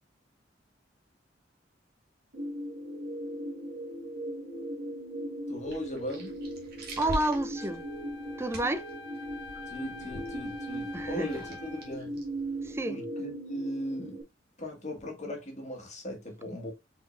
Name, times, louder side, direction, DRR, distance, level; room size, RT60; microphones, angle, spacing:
sound 1, 2.3-14.2, right 1 dB, 75° right, 1.7 m, -39 dB
voice 1, 5.5-6.3 9.7-12.2 12.9-14.2 14.6-16.7, equal, 40° left, 1.7 m, -38 dB
sound 2, 5.6-12.9, equal, 55° right, 1.6 m, -44 dB
voice 2, 7.0-7.8 8.4-8.8 10.9-11.4 12.6-13.0, right 1 dB, 15° right, 0.4 m, -30 dB
Wind instrument woodwind instrument, 7.5-12.0, left 4 dB, 30° right, 2.5 m, -46 dB
5.1 x 4.1 x 2.5 m
head